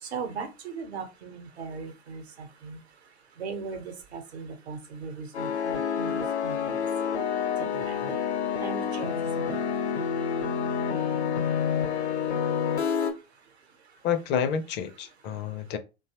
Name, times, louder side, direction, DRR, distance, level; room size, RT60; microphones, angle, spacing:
voice 1, 0.0-2.8 3.4-6.8 7.6-8.1 8.6-9.8, right 5 dB, 75° right, 0.8 m, -39 dB
sound 1, 5.3-13.1, left 7 dB, 80° left, 0.8 m, -28 dB
voice 2, 14.0-15.8, left 8 dB, 35° left, 0.5 m, -29 dB
2.8 x 2.3 x 2.8 m
figure-of-eight pair, 90°, 33 cm